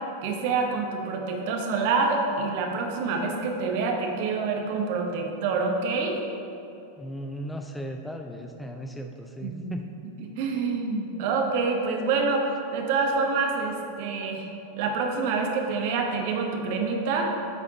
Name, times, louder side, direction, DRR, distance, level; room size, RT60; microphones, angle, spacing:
voice 1, 0.2-6.2 9.4-9.7 10.4-14.5 14.8-17.3, right 4 dB, 50° right, 2 dB, 0.9 m, -27 dB
voice 2, 7.0-9.9, equal, 5° left, 4 dB, 0.4 m, -36 dB
8.4 x 4.7 x 4.1 m, 2.8 s
figure-of-eight pair, 90°, 0 cm